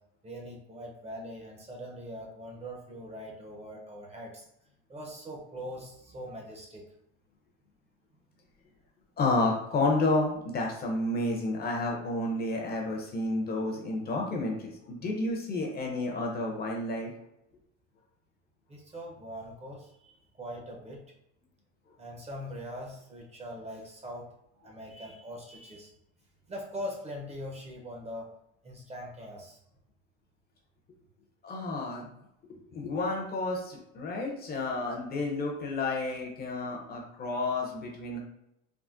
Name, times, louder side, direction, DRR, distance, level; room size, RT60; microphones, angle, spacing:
voice 1, 0.2-4.5 4.9-6.8 18.7-21.0 22.0-24.3 24.6-25.9 26.5-28.3 28.6-29.6, equal, 20° right, 0 dB, 0.6 m, -42 dB
voice 2, 9.2-17.1 31.4-32.1 32.5-38.2, left 2 dB, 25° left, 0 dB, 0.6 m, -30 dB
3.5 x 2.1 x 2.4 m, 0.82 s
supercardioid pair, 115°, 35 cm